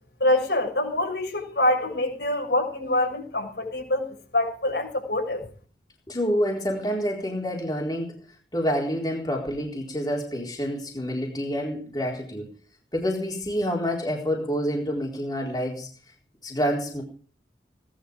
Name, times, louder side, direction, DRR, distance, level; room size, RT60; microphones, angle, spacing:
voice 1, 0.2-4.0 4.3-5.4, left 1 dB, 65° left, 2 dB, 6.6 m, -25 dB
voice 2, 6.1-8.2 8.5-12.5 12.9-15.9 16.4-17.0, equal, 20° left, -1 dB, 4.1 m, -27 dB
18.5 x 11.5 x 5.1 m, 0.42 s
head